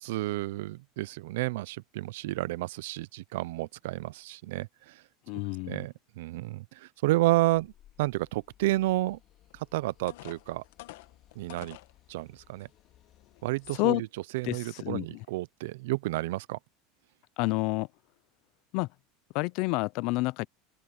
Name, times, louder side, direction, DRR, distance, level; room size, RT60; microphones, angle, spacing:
voice 1, 0.0-5.0 5.7-7.7 8.0-9.2 9.5-10.6 11.4-11.8 12.1-12.7 13.4-14.1 14.3-16.6, right 18 dB, 75° right, 0.5 m, -31 dB
voice 2, 5.3-5.8 13.7-14.0 14.4-15.2 17.4-17.9 18.7-18.9 19.3-20.5, left 24 dB, 50° left, 0.5 m, -29 dB
sound 1, 7.5-13.9, left 12 dB, 35° left, 3.7 m, -61 dB
sound 2, 9.5-9.6 10.1-11.9 12.6-12.7 13.2-13.4, left 17 dB, 75° left, 1.5 m, -47 dB
open air
supercardioid pair, 165°, 0 cm